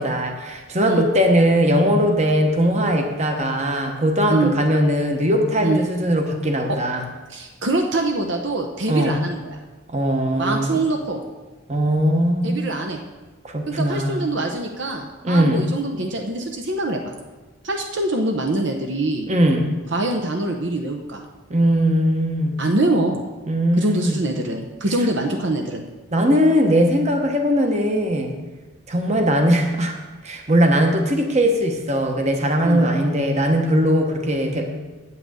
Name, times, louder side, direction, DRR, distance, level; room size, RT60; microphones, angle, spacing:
voice 1, 0.0-7.0 8.9-9.1 9.9-10.8 11.7-12.8 13.4-14.3 15.2-15.6 19.3-19.7 21.5-22.6 23.5-24.2 26.1-28.3 28.9-30.0 30.2-34.8, equal, 30° right, 3 dB, 1.1 m, -20 dB
voice 2, 7.3-9.6 10.4-11.2 12.4-13.0 13.7-17.1 17.6-19.3 19.9-21.2 22.6-23.2 23.8-25.8 32.6-32.9, right 2 dB, 60° right, 3 dB, 0.8 m, -24 dB
8.9 x 5.8 x 8.2 m, 1.2 s
head